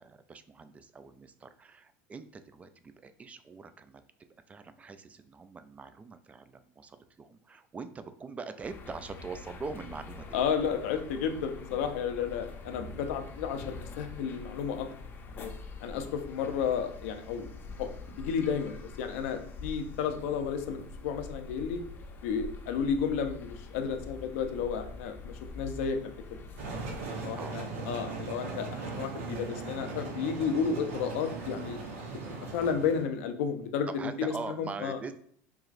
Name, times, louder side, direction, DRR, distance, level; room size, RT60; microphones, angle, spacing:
voice 1, 0.0-4.0 4.5-10.5 16.0-16.1 27.4-27.6 34.0-35.1, right 4 dB, 20° right, 11 dB, 0.3 m, -43 dB
sound 1, 8.6-27.1, left 3 dB, 30° left, 0.6 m, -45 dB
voice 2, 10.3-14.9 15.3-15.5 15.8-17.5 17.8-17.9 18.2-21.8 22.2-26.1 27.0-31.8 32.5-35.0, left 6 dB, 80° left, 7 dB, 0.6 m, -32 dB
sound 2, 26.6-33.0, right 3 dB, 90° right, 0.9 m, -39 dB
4.8 x 3.0 x 2.5 m, 0.63 s
supercardioid pair, 120°, 7 cm